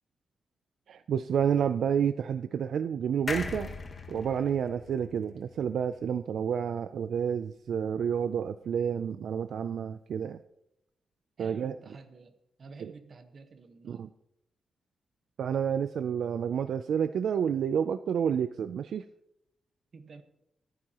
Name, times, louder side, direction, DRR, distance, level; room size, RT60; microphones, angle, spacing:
voice 1, 0.9-3.7 4.1-10.4 11.4-11.7 12.8-12.9 13.8-14.1 15.4-19.0, right 8 dB, 75° right, 11 dB, 0.4 m, -29 dB
sound 1, 3.3-6.7 7.1-7.2 7.4-7.5, left 3 dB, 30° left, 1.4 m, -40 dB
voice 2, 11.4-14.1 19.9-20.2, right 4 dB, 45° right, 8 dB, 1.3 m, -50 dB
25.5 x 9.5 x 3.0 m, 0.82 s
wide cardioid pair, 155°, 0 cm